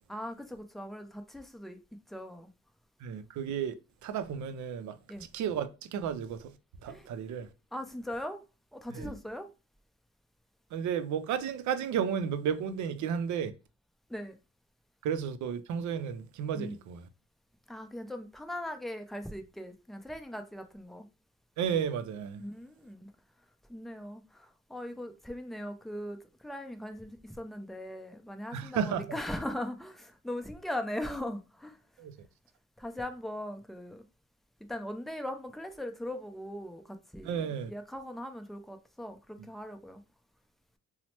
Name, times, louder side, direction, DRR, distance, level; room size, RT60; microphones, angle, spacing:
voice 1, 0.1-1.8 2.1-2.5 5.1-5.3 6.9-7.1 7.7-8.4 8.7-9.5 14.1-14.3 16.5-16.8 17.7-21.1 22.4-23.1 23.7-31.8 32.8-34.0 34.7-40.0, left 1 dB, ahead, 0.4 m, -39 dB
voice 2, 3.0-3.7 4.0-5.0 5.3-6.5 6.8-7.5 8.9-9.1 10.7-13.5 15.0-17.1 21.6-22.5 28.5-29.2 32.0-32.1 37.2-37.7, right 8 dB, 70° right, 0.5 m, -33 dB
2.9 x 2.0 x 2.9 m
cardioid pair, 90°, 30 cm